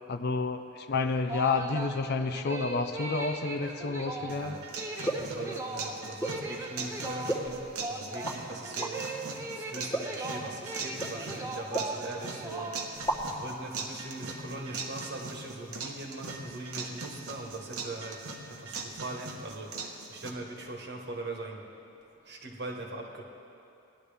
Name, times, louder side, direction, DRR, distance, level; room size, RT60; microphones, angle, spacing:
voice 1, 0.1-4.6, left 4 dB, 45° left, 8 dB, 0.5 m, -30 dB
sound 1, 1.1-13.2, right 2 dB, 15° right, 0.8 m, -39 dB
voice 2, 4.2-4.6 5.2-9.2 9.5-12.7 13.4-21.6 22.3-23.2, right 2 dB, 50° right, 0 dB, 1.4 m, -41 dB
sound 2, 4.3-20.3, right 4 dB, 85° right, 1.2 m, -40 dB
sound 3, 5.0-5.4 6.2-6.4 7.3-7.8 8.2-8.4 8.8-8.9 9.9-10.2 11.0-11.2 11.7-12.3 12.6-12.7 12.9-13.4, right 1 dB, 15° left, 1.0 m, -33 dB
19.0 x 11.0 x 3.4 m, 2.7 s
head